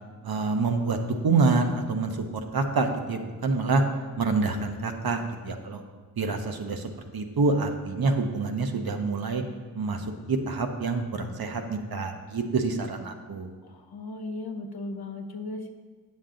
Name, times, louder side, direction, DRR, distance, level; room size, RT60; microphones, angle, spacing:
voice 1, 0.2-2.1 2.5-3.8 4.2-5.8 6.2-9.4 9.7-13.5, right 3 dB, 70° right, 5 dB, 0.9 m, -27 dB
voice 2, 13.6-15.7, left 2 dB, 80° left, 4 dB, 0.9 m, -36 dB
8.7 x 7.4 x 3.8 m, 1.5 s
wide cardioid pair, 70°, 37 cm